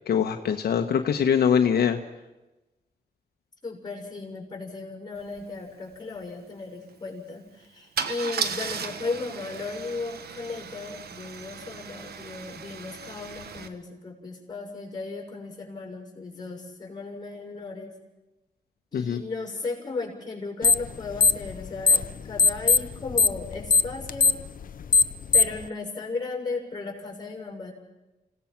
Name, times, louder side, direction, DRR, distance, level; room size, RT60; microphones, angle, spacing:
voice 1, 0.1-2.0 18.9-19.2, left 7 dB, 80° left, 5 dB, 1.2 m, -23 dB
voice 2, 3.6-17.9 18.9-24.4 25.3-27.7, left 3 dB, 25° left, 1 dB, 6.5 m, -35 dB
Car / Engine starting / Idling, 5.3-5.4 5.7-6.0 8.0-13.7, right 7 dB, 85° right, 1.4 m, -36 dB
sound 1, 20.6-20.9 21.2-22.1 22.4-25.6, left 4 dB, 60° left, 0.7 m, -19 dB
28.5 x 17.5 x 6.0 m, 1.0 s
cardioid pair, 100°, 16 cm